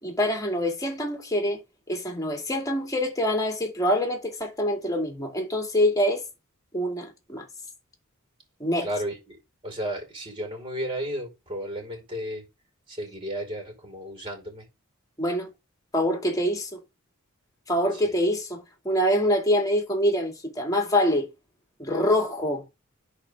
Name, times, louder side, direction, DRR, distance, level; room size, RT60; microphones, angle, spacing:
voice 1, 0.0-1.6 1.9-6.2 6.7-7.4 8.6-8.9 15.2-15.5 15.9-16.8 17.7-21.3 21.8-22.6, equal, 15° left, 2.4 m, -25 dB
voice 2, 8.8-12.4 12.9-14.6 17.9-18.1, equal, 25° right, 4.8 m, -34 dB
10.5 x 4.5 x 3.6 m
head